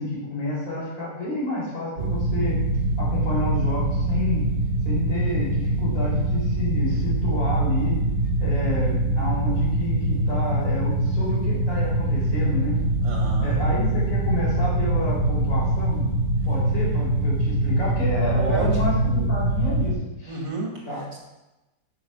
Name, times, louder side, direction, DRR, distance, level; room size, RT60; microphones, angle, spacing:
voice 1, 0.0-2.6 3.0-4.5 4.9-8.0 8.4-12.8 13.4-16.1 16.4-19.9 20.2-20.4 20.9-21.0, left 2 dB, 90° left, -6 dB, 5.4 m, -29 dB
sound 1, 2.0-19.9, right 2 dB, 50° right, 3.6 m, -23 dB
voice 2, 13.0-13.6 18.3-18.8 20.3-21.2, right 2 dB, 80° right, -1 dB, 3.4 m, -31 dB
12.5 x 5.9 x 5.8 m, 1.0 s
omnidirectional pair, 2.0 m